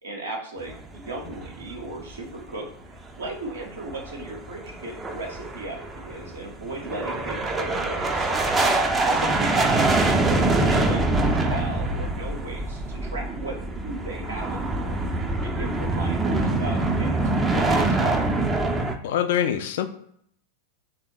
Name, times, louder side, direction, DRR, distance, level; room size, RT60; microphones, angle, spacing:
voice 1, 0.0-8.3 9.0-10.0 10.3-13.6 13.8-15.1 15.4-18.3, right 2 dB, 70° right, 0 dB, 0.7 m, -36 dB
sound 1, 0.6-2.3 2.6-2.7 3.1-3.2 3.6-18.9, right 2 dB, 15° right, 0.4 m, -24 dB
voice 2, 19.0-19.9, left 9 dB, 55° left, 9 dB, 0.3 m, -24 dB
3.3 x 2.1 x 3.1 m, 0.67 s
figure-of-eight pair, 90°, 0 cm